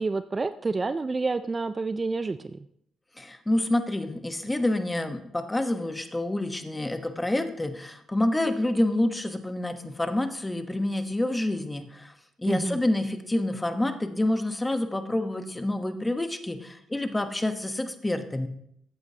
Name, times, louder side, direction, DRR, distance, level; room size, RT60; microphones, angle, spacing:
voice 1, 0.0-2.6 12.5-12.8, right 3 dB, 30° right, 12 dB, 0.4 m, -28 dB
voice 2, 3.2-18.5, left 1 dB, 15° left, 8 dB, 1.0 m, -28 dB
14.0 x 8.8 x 2.8 m, 0.72 s
cardioid pair, 90°, 0 cm